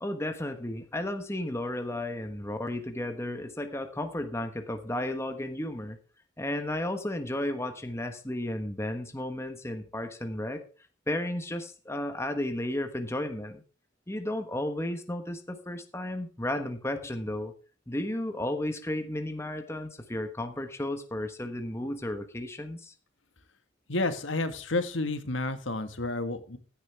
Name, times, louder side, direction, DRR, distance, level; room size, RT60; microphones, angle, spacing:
voice 1, 0.0-6.0 6.4-10.6 11.1-13.6 14.1-17.5 17.9-22.9, left 1 dB, 15° left, 7 dB, 1.2 m, -33 dB
voice 2, 23.9-26.6, left 2 dB, 75° left, 9 dB, 1.7 m, -30 dB
15.5 x 10.0 x 3.5 m, 0.37 s
head